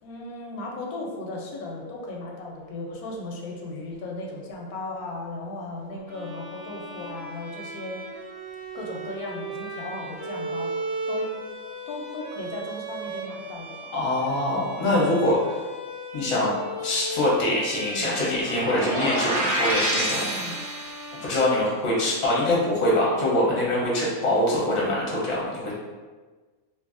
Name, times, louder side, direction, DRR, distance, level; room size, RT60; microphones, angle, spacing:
voice 1, 0.0-8.0 8.7-10.7 11.1-11.4 11.9-13.8 17.8-18.1 20.1-20.5, left 2 dB, 85° left, -1 dB, 1.1 m, -36 dB
Bowed string instrument, 6.1-22.2, right 2 dB, 70° right, 1.0 m, -37 dB
voice 2, 13.9-15.6 16.1-16.5 16.8-20.5 21.2-25.7, left 1 dB, 40° left, -5 dB, 0.6 m, -24 dB
sound 1, 18.4-21.2, right 1 dB, 90° right, 1.2 m, -27 dB
2.6 x 2.6 x 2.5 m, 1.3 s
omnidirectional pair, 1.5 m